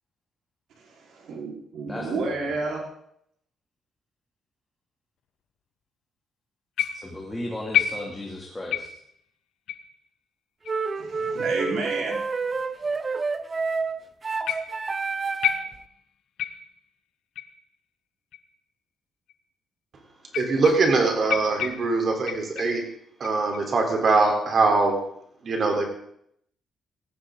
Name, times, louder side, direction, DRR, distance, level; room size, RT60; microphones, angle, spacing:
voice 1, 0.8-2.8 11.0-12.2, right 3 dB, 75° right, -1 dB, 4.4 m, -31 dB
voice 2, 1.9-2.5 6.9-8.9, left 1 dB, 10° left, -3 dB, 2.7 m, -35 dB
sound 1, 6.8-7.2 7.7-8.4 8.7-9.1 9.7-9.9 10.6-10.7 11.6-11.7 12.6-12.7 14.5-14.9 15.4-16.0 16.4-16.8 17.4-17.6 18.3-18.4 19.3-19.4 20.3-21.0 21.3-22.8 23.2-23.7 24.2-24.6, left 10 dB, 80° left, 1.1 m, -30 dB
sound 2, 10.7-15.8, right 4 dB, 25° right, 0.6 m, -29 dB
voice 3, 20.3-22.8 23.2-25.0 25.4-25.8, right 3 dB, 45° right, 2 dB, 3.8 m, -22 dB
17.5 x 14.5 x 3.9 m, 0.69 s
cardioid pair, 135°, 0 cm